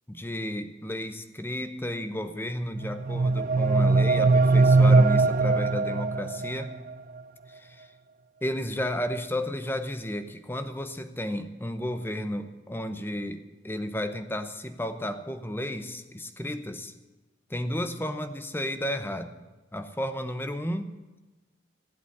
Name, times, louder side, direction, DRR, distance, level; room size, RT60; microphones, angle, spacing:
voice 1, 0.1-6.7 7.5-7.9 8.4-16.9 17.5-19.3 19.7-20.9, left 1 dB, 10° left, 9 dB, 0.9 m, -33 dB
sound 1, 2.7-6.7, right 3 dB, 45° right, 0.4 m, -21 dB
16.0 x 8.3 x 9.7 m, 1.2 s
head